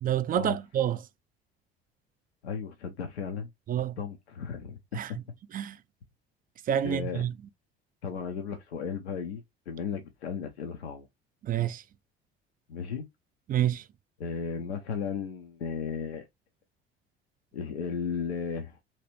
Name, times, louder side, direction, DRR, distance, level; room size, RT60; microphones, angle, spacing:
voice 1, 0.0-1.0 3.7-4.0 4.9-5.1 5.5-5.8 6.7-7.3 11.4-11.8 13.5-13.8, right 10 dB, 30° right, 0.4 m, -28 dB
voice 2, 2.4-3.5 4.0-5.2 6.8-7.2 8.0-11.1 12.7-13.1 14.2-16.2 17.5-18.8, left 6 dB, 85° left, 0.6 m, -35 dB
3.2 x 2.9 x 2.9 m
hypercardioid pair, 60°, 32 cm